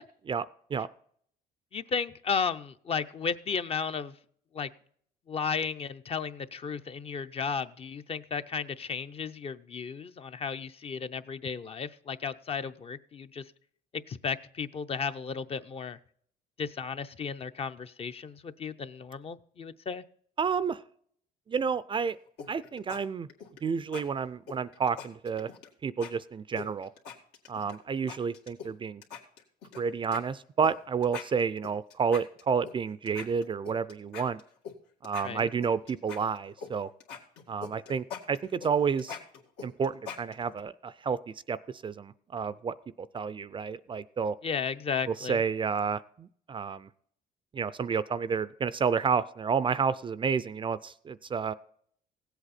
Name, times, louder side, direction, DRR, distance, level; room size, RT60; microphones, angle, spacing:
voice 1, 1.7-4.1 4.5-4.7 5.3-13.4 13.9-16.0 16.6-20.0 35.2-35.5 44.4-45.4, left 6 dB, 35° left, 10 dB, 0.6 m, -34 dB
voice 2, 20.4-20.8 21.5-22.2 22.5-23.3 23.6-25.5 25.8-26.9 27.5-29.0 29.8-34.4 35.0-36.9 37.5-39.2 39.6-41.2 41.5-41.6 41.8-44.4 45.1-46.9 47.5-51.5, right 6 dB, 30° right, 17 dB, 0.4 m, -30 dB
sound 1, 22.4-23.0 23.3-23.6 23.9-24.0 24.5-25.7 26.0-26.1 26.6-27.8 28.1-28.7 29.0-29.8 30.1-30.2 30.6-30.7 31.0-32.7 33.1-34.8 35.0-36.7 37.0-40.6, left 6 dB, 85° left, 2.1 m, -42 dB
16.5 x 8.0 x 4.2 m, 0.62 s
cardioid pair, 110°, 17 cm